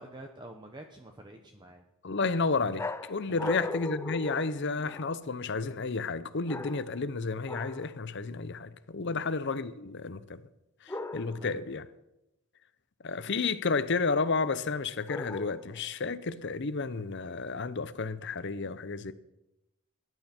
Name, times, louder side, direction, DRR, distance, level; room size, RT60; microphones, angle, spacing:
voice 1, 0.0-1.8 3.3-3.6 9.0-9.2 11.3-11.6, right 1 dB, 20° right, 1.0 m, -47 dB
voice 2, 2.0-10.4 10.8-11.9 13.0-19.1, left 4 dB, 55° left, 0.8 m, -31 dB
sound 1, 2.8-5.3 6.4-7.1 7.5-7.9 10.9-11.6 15.1-15.8, left 2 dB, 10° left, 0.4 m, -38 dB
19.0 x 11.0 x 4.4 m
head